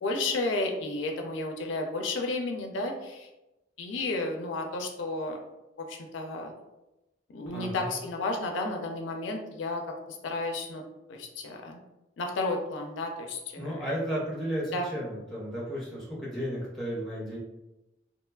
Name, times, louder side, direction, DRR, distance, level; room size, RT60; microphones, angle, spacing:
voice 1, 0.0-3.3 3.8-5.4 5.8-6.6 7.3-9.8 10.1-10.8 11.1-11.8 12.2-13.9 14.7-14.9, left 2 dB, 80° left, 2 dB, 0.4 m, -32 dB
voice 2, 7.5-7.9 13.6-17.4, equal, ahead, -5 dB, 0.7 m, -33 dB
2.9 x 2.2 x 2.2 m, 0.97 s
head